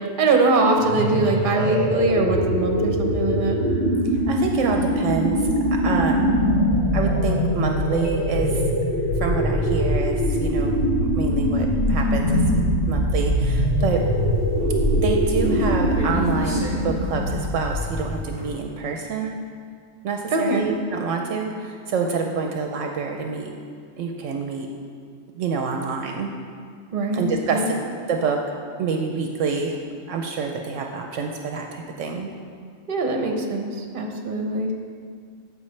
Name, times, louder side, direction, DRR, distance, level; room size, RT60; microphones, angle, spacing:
voice 1, 0.2-3.6 15.4-15.6 20.3-20.6 26.9-27.8 32.9-34.7, right 2 dB, 45° right, 3 dB, 1.0 m, -22 dB
sound 1, 0.8-18.3, equal, 45° left, 2.4 m, -22 dB
voice 2, 4.1-6.3 6.9-8.6 9.2-14.0 15.0-19.4 20.0-23.5 24.0-24.7 25.3-26.3 27.1-27.8 28.1-28.4 28.8-29.7 30.1-32.3, right 5 dB, 75° right, 3 dB, 0.9 m, -27 dB
sound 2, 13.6-18.6, right 2 dB, 20° right, 1.3 m, -36 dB
13.5 x 5.2 x 3.2 m, 2.1 s
omnidirectional pair, 1.3 m